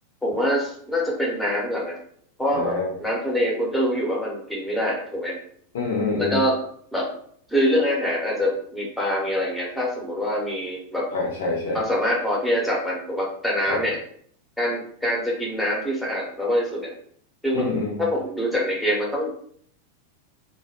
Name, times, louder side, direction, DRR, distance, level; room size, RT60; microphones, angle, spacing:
voice 1, 0.2-2.0 2.4-2.7 3.0-5.4 6.2-6.6 6.9-7.1 7.5-11.0 11.7-14.0 14.6-16.9 17.4-19.3, equal, ahead, -3 dB, 0.8 m, -25 dB
voice 2, 2.5-2.9 5.7-6.4 11.1-11.8 13.7-13.8 17.5-18.0, left 3 dB, 55° left, -2 dB, 0.5 m, -26 dB
2.2 x 2.1 x 2.8 m, 0.63 s
figure-of-eight pair, 90°, 0 cm